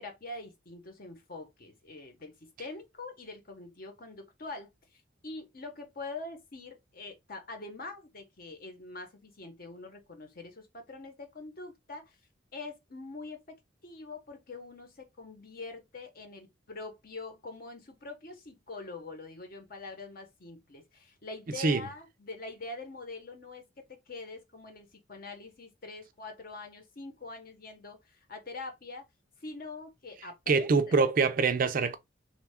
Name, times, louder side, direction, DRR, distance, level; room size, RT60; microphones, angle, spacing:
voice 1, 0.0-2.3 2.6-12.2 12.5-13.4 13.8-29.0 29.4-31.1, left 3 dB, 50° left, 0.9 m, -44 dB
voice 2, 30.5-32.0, right 4 dB, 45° right, 0.4 m, -25 dB
3.2 x 2.3 x 3.4 m
head